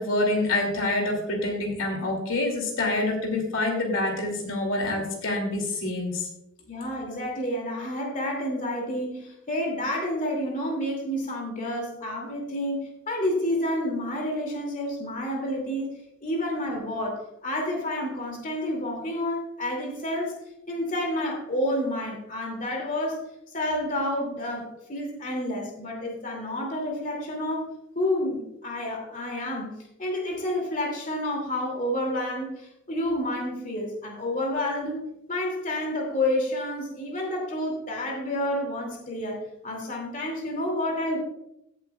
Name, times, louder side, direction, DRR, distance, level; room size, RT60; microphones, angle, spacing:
voice 1, 0.0-6.3, left 2 dB, 65° left, 2 dB, 2.5 m, -26 dB
voice 2, 6.7-15.9 16.2-20.4 20.7-23.2 23.5-29.7 30.0-41.2, left 1 dB, 40° left, 0 dB, 2.5 m, -29 dB
16.5 x 8.1 x 2.3 m, 0.82 s
head